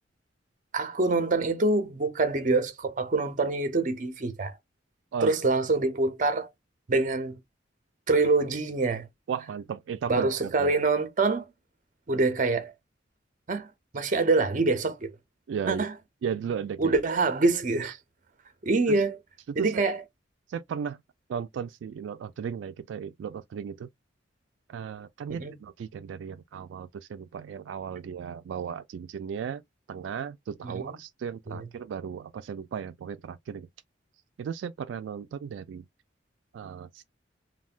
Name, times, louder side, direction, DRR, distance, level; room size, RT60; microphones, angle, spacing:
voice 1, 0.7-4.6 5.2-6.5 6.9-7.4 8.1-9.1 10.1-11.4 12.1-12.7 13.5-13.7 13.9-15.1 15.7-15.9 16.8-17.9 18.6-19.2 19.6-20.0 25.4-25.5 30.6-31.0 31.5-31.7, right 3 dB, 45° right, 0.6 m, -25 dB
voice 2, 9.3-10.7 15.5-15.8 16.2-16.9 17.8-17.9 18.9-19.0 19.5-19.8 20.5-21.0 21.3-23.9 24.7-29.6 29.9-33.7 34.4-35.9 36.5-37.0, right 7 dB, 85° right, 0.3 m, -35 dB
3.2 x 2.1 x 2.4 m
head